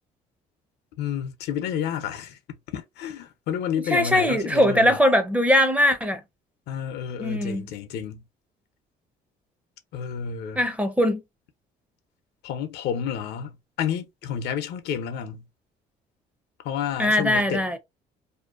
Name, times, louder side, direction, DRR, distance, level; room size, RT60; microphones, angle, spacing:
voice 1, 1.0-5.0 6.7-8.2 9.9-10.6 12.4-15.5 16.6-17.8, left 8 dB, 80° left, 0.7 m, -30 dB
voice 2, 3.9-6.2 7.2-7.6 10.6-11.2 17.0-17.8, left 1 dB, 10° right, 0.5 m, -21 dB
2.7 x 2.1 x 2.4 m
cardioid pair, 110°, 17 cm